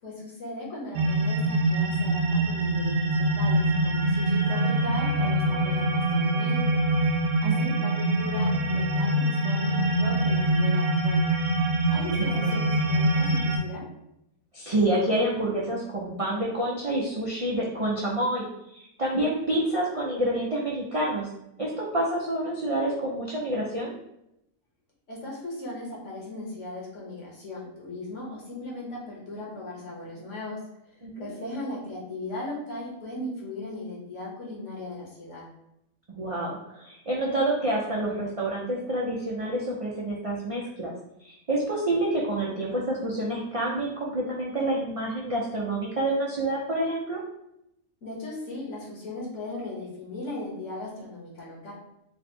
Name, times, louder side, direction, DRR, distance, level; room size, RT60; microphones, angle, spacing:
voice 1, 0.0-6.8 7.4-11.2 11.9-13.8 25.1-30.6 31.2-35.5 48.0-51.7, left 2 dB, 65° left, -4 dB, 1.5 m, -37 dB
sound 1, 0.9-13.6, right 1 dB, 70° right, 1.0 m, -24 dB
voice 2, 7.4-7.7 12.2-12.5 14.5-18.5 18.7-21.3 21.6-23.9 31.0-31.3 36.1-40.9 41.2-47.2, right 1 dB, 50° right, -4 dB, 0.4 m, -28 dB
3.5 x 2.2 x 4.2 m, 0.82 s
omnidirectional pair, 1.4 m